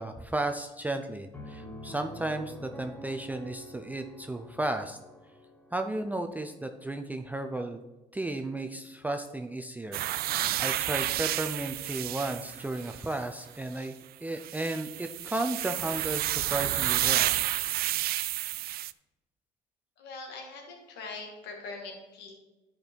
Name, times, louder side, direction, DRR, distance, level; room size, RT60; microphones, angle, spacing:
voice 1, 0.0-5.0 5.7-7.8 8.1-10.0 10.6-14.0 14.2-17.3, right 2 dB, 10° right, 5 dB, 0.5 m, -34 dB
Piano, 1.3-6.9, left 1 dB, 10° left, 1.9 m, -47 dB
sound 1, 9.9-13.2 14.4-18.9, right 15 dB, 65° right, 0.4 m, -30 dB
voice 2, 20.0-22.3, left 3 dB, 80° left, 1 dB, 2.0 m, -42 dB
11.0 x 5.1 x 4.5 m, 1.1 s
cardioid pair, 110°, 17 cm